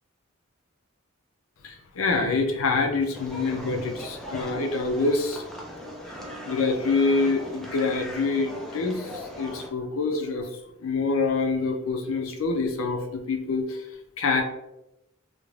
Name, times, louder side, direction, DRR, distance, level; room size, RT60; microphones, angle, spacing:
voice 1, 1.6-5.4 6.5-9.0 9.4-10.5 10.8-13.8 14.2-14.4, left 3 dB, 70° left, 3 dB, 0.5 m, -26 dB
sound 1, 3.1-9.7, equal, ahead, 0.4 m, -39 dB
2.5 x 2.1 x 3.1 m, 0.88 s
head